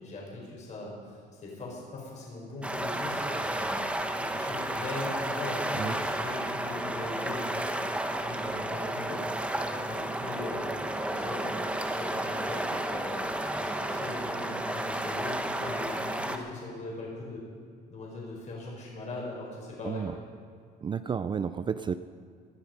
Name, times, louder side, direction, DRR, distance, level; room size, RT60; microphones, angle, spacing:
voice 1, 0.0-3.8 4.2-7.8 8.2-10.7 11.0-13.2 13.5-17.4 17.9-20.2, left 2 dB, 45° left, -3 dB, 4.5 m, -40 dB
sound 1, 2.6-16.4, right 1 dB, 5° right, 1.2 m, -32 dB
voice 2, 20.8-21.9, right 6 dB, 30° right, 12 dB, 0.4 m, -31 dB
19.0 x 12.0 x 5.2 m, 2.2 s
cardioid pair, 110°, 17 cm